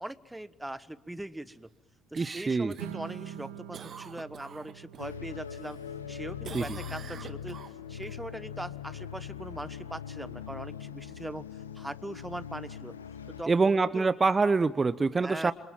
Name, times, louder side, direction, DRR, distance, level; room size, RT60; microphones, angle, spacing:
voice 1, 0.0-1.7 2.1-5.8 6.1-7.6 7.9-11.4 11.7-13.0 13.4-13.5 13.9-14.1 15.2-15.5, right 1 dB, 10° right, 16 dB, 1.2 m, -40 dB
Cough, 2.1-5.1 5.5-6.1 6.4-8.1 12.5-12.6, right 7 dB, 45° right, 1.5 m, -47 dB
voice 2, 2.2-2.7 6.5-6.8 13.5-15.5, right 4 dB, 25° right, 14 dB, 0.9 m, -25 dB
Strum, 2.8-9.0, right 10 dB, 70° right, 1.7 m, -47 dB
sound 1, 5.0-13.4, left 8 dB, 85° left, 1.2 m, -41 dB
28.0 x 27.0 x 7.4 m, 0.93 s
figure-of-eight pair, 50°, 0 cm